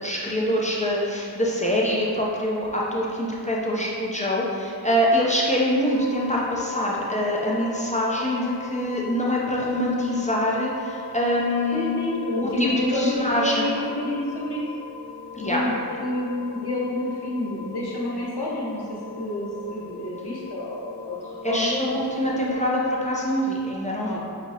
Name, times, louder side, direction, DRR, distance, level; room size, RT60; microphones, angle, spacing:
voice 1, 0.0-11.9 12.4-13.7 15.3-15.7 21.4-24.2, equal, 20° left, -4 dB, 0.5 m, -24 dB
sound 1, 5.9-22.5, left 3 dB, 90° left, 0.6 m, -39 dB
voice 2, 11.7-14.6 15.4-15.7 16.0-21.8 24.0-24.2, left 1 dB, 70° left, -5 dB, 1.0 m, -28 dB
5.9 x 2.8 x 2.8 m, 2.4 s
wide cardioid pair, 45°, 40 cm